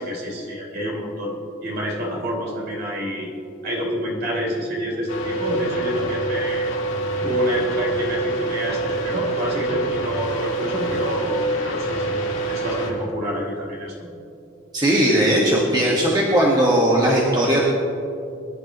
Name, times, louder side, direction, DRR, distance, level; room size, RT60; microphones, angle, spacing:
voice 1, 0.0-3.3 3.6-6.7 7.2-12.2 12.5-14.1, equal, 55° right, -3 dB, 3.6 m, -27 dB
sound 1, 5.1-12.9, right 2 dB, 80° left, 2.5 m, -26 dB
voice 2, 14.7-17.6, right 1 dB, 20° right, -4 dB, 1.6 m, -18 dB
23.0 x 11.5 x 3.1 m, 2.6 s
head